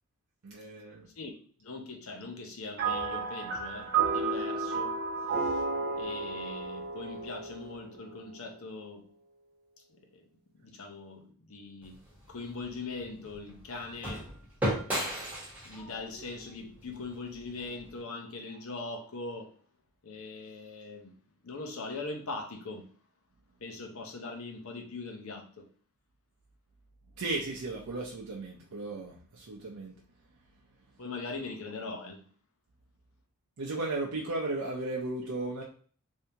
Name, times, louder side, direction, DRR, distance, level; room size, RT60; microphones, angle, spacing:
voice 1, 0.4-1.1 27.2-29.9 33.6-35.6, right 2 dB, 85° right, 0.6 m, -35 dB
voice 2, 1.2-4.9 5.3-5.6 6.0-9.1 9.9-10.2 10.5-12.0 12.3-14.3 15.6-19.5 20.0-21.1 21.4-22.9 23.6-25.7 31.0-32.2, left 3 dB, 70° left, 0.7 m, -41 dB
sound 1, 2.8-8.3, right 4 dB, 45° right, 1.0 m, -32 dB
sound 2, 11.8-18.0, equal, 5° right, 1.1 m, -37 dB
3.4 x 2.7 x 2.7 m
head